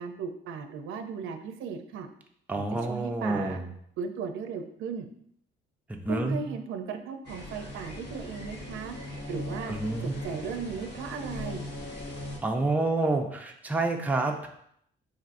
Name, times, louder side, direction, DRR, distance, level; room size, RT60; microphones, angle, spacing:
voice 1, 0.0-2.1 2.6-3.6 4.0-5.1 6.1-9.0 9.3-9.7 10.0-11.7, right 6 dB, 80° right, 7 dB, 0.5 m, -36 dB
voice 2, 2.5-3.7 5.9-6.4 9.7-10.1 12.4-14.5, right 2 dB, 10° right, 2 dB, 0.5 m, -28 dB
sound 1, 7.2-12.4, left 1 dB, 55° left, 1.1 m, -39 dB
4.5 x 2.6 x 2.5 m, 0.70 s
cardioid pair, 90°, 20 cm